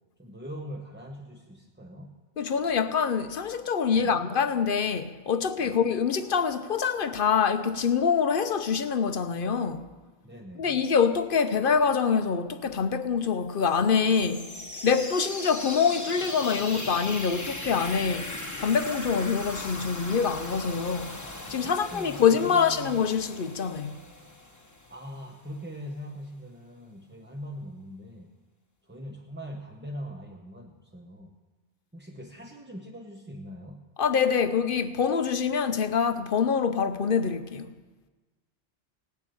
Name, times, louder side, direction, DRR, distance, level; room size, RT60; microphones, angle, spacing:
voice 1, 0.2-2.2 3.9-4.2 5.6-5.8 10.2-10.8 21.6-22.9 24.9-28.3 28.9-31.3 31.9-33.9, equal, 10° right, 0.8 m, -42 dB
voice 2, 2.4-9.9 10.6-14.5 14.8-21.1 21.5-24.0 34.0-37.7, left 6 dB, 55° left, 0.8 m, -25 dB
sound 1, 13.6-25.3, left 2 dB, 15° left, 1.0 m, -39 dB
17.5 x 7.0 x 9.1 m
omnidirectional pair, 1.2 m